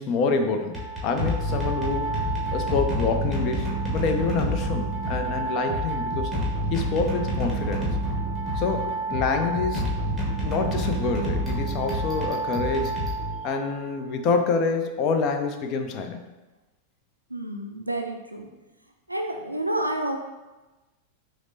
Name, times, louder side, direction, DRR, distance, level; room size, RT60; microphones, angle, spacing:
voice 1, 0.0-2.1 2.5-6.3 6.7-7.9 8.6-9.8 10.4-13.0 13.4-16.2, left 4 dB, 40° left, 6 dB, 0.4 m, -27 dB
sound 1, 0.6-13.8, right 1 dB, ahead, 1.0 m, -28 dB
voice 2, 17.3-18.5 19.1-20.2, right 1 dB, 85° right, 3 dB, 0.4 m, -29 dB
5.8 x 2.0 x 2.7 m, 1.1 s
figure-of-eight pair, 90°, 0 cm